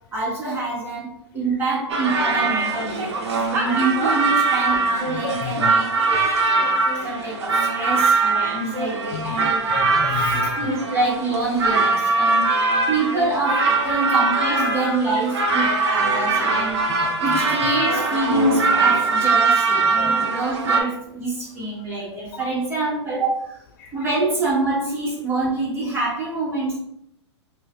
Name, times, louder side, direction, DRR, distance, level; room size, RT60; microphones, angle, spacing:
voice 1, 0.1-1.1 1.3-3.2 3.5-6.3 7.0-9.7 10.6-12.5 12.9-16.8 17.2-23.4 23.9-26.8, right 2 dB, 15° right, -6 dB, 1.4 m, -25 dB
sound 1, 1.9-20.8, right 3 dB, 65° right, 0.8 m, -21 dB
voice 2, 2.7-3.1 3.6-3.8 5.1-5.7 7.8-8.0 9.1-9.4 9.7-10.5 11.9-12.0 12.3-12.8 13.8-14.0 14.5-15.2 15.6-16.0 17.0-17.7 18.8-18.9 20.0-20.1 22.4-22.5 23.8-23.9, left 5 dB, 45° left, 4 dB, 0.4 m, -33 dB
2.8 x 2.6 x 3.1 m, 0.74 s
hypercardioid pair, 125°, 15 cm